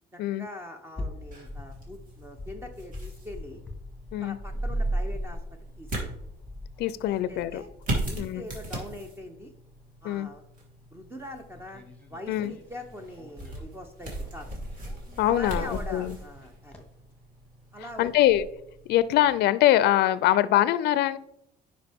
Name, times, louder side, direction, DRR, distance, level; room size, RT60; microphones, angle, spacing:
voice 1, 0.1-3.6 4.2-6.1 7.0-7.7 7.9-9.5 10.0-10.5 10.9-14.6 15.2-16.8 17.7-18.4, left 1 dB, 15° right, 5 dB, 0.8 m, -43 dB
sound 1, 0.9-18.7, left 2 dB, 5° left, 1.4 m, -47 dB
sound 2, 1.3-19.4, right 1 dB, 55° right, 2.7 m, -37 dB
voice 2, 6.8-7.6 8.2-8.4 10.0-10.3 12.3-12.5 15.2-16.1 18.0-18.5 18.9-21.2, left 13 dB, 75° left, 16 dB, 0.4 m, -23 dB
9.8 x 5.1 x 3.5 m, 0.79 s
cardioid pair, 110°, 17 cm